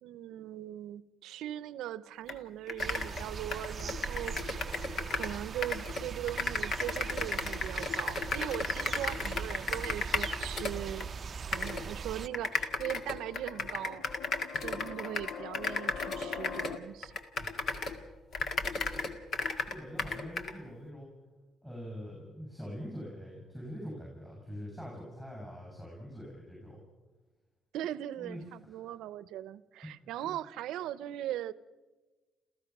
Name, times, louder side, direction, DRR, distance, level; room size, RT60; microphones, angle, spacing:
voice 1, 0.0-4.7 5.1-11.1 11.4-14.1 14.6-17.1 27.7-31.5, right 12 dB, 90° right, 18 dB, 0.6 m, -40 dB
sound 1, 2.3-2.4 2.7-5.4 5.6-11.1 11.5-11.8 12.3-18.0 18.3-20.5, left 3 dB, 55° left, 1.9 m, -34 dB
sound 2, 2.8-12.3, right 6 dB, 45° right, 0.5 m, -40 dB
sound 3, 11.7-16.8, left 7 dB, 85° left, 0.9 m, -45 dB
voice 2, 17.4-18.0 18.9-21.1 21.6-26.8 28.2-28.9 30.1-30.4, equal, 10° left, -2 dB, 7.7 m, -45 dB
30.0 x 15.0 x 6.1 m, 1.2 s
cardioid pair, 90°, 0 cm